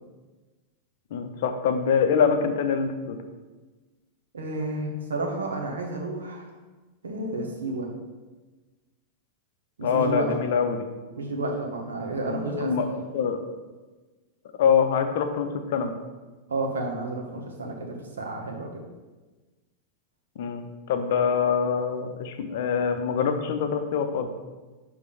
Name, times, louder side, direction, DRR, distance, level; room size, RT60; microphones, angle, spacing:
voice 1, 1.1-3.2 9.8-10.8 12.3-13.4 14.6-15.9 20.4-24.3, left 6 dB, 55° left, 7 dB, 0.6 m, -25 dB
voice 2, 4.3-6.5 7.0-7.9 9.8-10.3 11.1-12.9 16.5-18.8, right 2 dB, 70° right, 1 dB, 1.2 m, -31 dB
6.8 x 3.6 x 4.9 m, 1.3 s
figure-of-eight pair, 90°, 0 cm